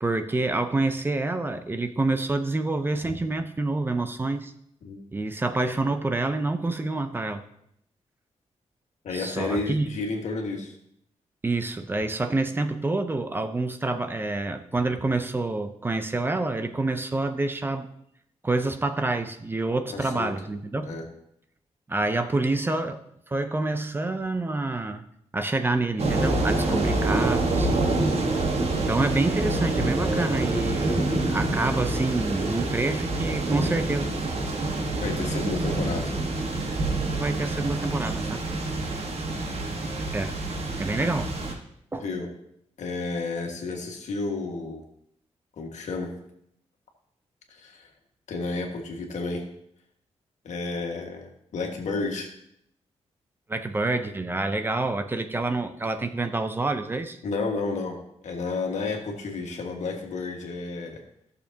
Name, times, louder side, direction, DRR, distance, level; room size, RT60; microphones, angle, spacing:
voice 1, 0.0-4.5 5.1-7.4 9.1-9.9 11.4-17.9 18.4-21.0 21.9-23.0 23.3-25.0 25.3-28.3 28.9-31.0 31.3-34.1 37.1-38.4 40.1-40.4 40.7-41.3 41.9-42.1 53.5-57.2, right 2 dB, 20° right, 9 dB, 0.5 m, -27 dB
voice 2, 9.0-10.7 19.9-20.3 20.8-21.0 26.6-26.8 35.0-36.2 42.0-42.3 42.8-44.8 45.6-46.2 47.5-47.9 48.3-49.5 50.4-52.3 57.2-61.0, left 3 dB, 85° left, 2 dB, 1.6 m, -31 dB
sound 1, 26.0-41.5, right 2 dB, 60° right, 1.4 m, -27 dB
15.0 x 6.7 x 2.8 m, 0.74 s
wide cardioid pair, 160°, 12 cm